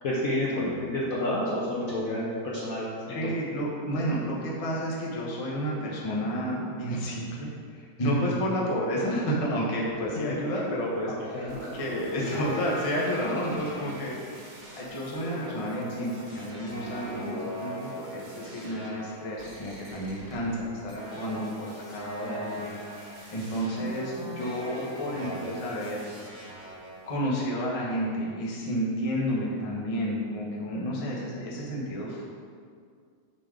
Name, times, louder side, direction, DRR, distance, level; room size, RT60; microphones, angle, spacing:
voice 1, 0.0-3.2 10.2-10.4 11.3-11.7 22.2-22.4, left 1 dB, 60° left, -5 dB, 1.0 m, -30 dB
voice 2, 3.1-14.5 14.7-26.0 27.1-32.2, equal, 25° left, -4 dB, 0.7 m, -31 dB
sound 1, 11.5-27.2, equal, 55° right, 0.5 m, -40 dB
6.7 x 5.1 x 3.8 m, 2.2 s
omnidirectional pair, 2.2 m